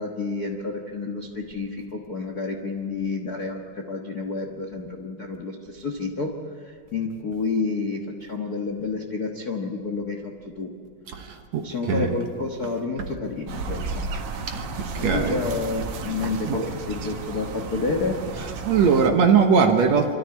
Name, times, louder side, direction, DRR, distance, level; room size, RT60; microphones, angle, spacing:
voice 1, 0.0-6.3 6.6-10.7 11.6-14.1 15.0-18.2, left 4 dB, 65° left, 2 dB, 0.9 m, -29 dB
voice 2, 11.1-12.1 14.5-15.4 16.4-16.7 18.6-20.1, right 6 dB, 65° right, 4 dB, 2.0 m, -21 dB
sound 1, 13.5-19.1, right 3 dB, 90° right, 3.3 m, -33 dB
26.0 x 13.5 x 9.6 m, 2.1 s
omnidirectional pair, 4.1 m